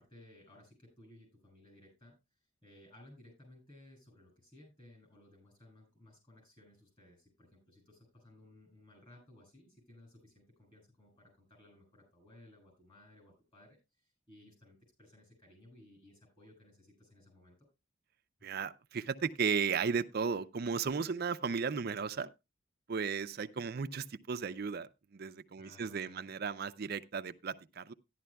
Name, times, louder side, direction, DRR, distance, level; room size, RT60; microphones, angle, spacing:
voice 1, 0.0-2.1 2.6-17.6 25.6-26.3, left 1 dB, 30° left, 6.9 m, -59 dB
voice 2, 18.4-22.3 22.9-27.9, right 5 dB, 50° right, 0.5 m, -35 dB
14.0 x 11.0 x 2.2 m
head